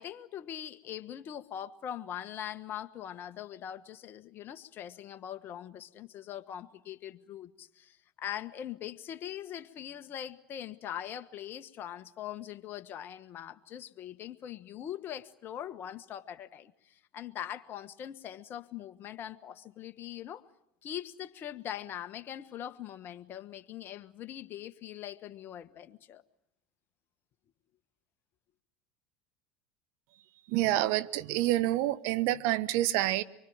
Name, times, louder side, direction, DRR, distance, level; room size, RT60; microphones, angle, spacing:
voice 1, 0.0-20.5 20.8-26.2, left 10 dB, 45° left, 1.5 m, -42 dB
voice 2, 30.5-33.2, right 15 dB, 60° right, 1.2 m, -28 dB
25.0 x 24.0 x 8.9 m
hypercardioid pair, 85°, 5 cm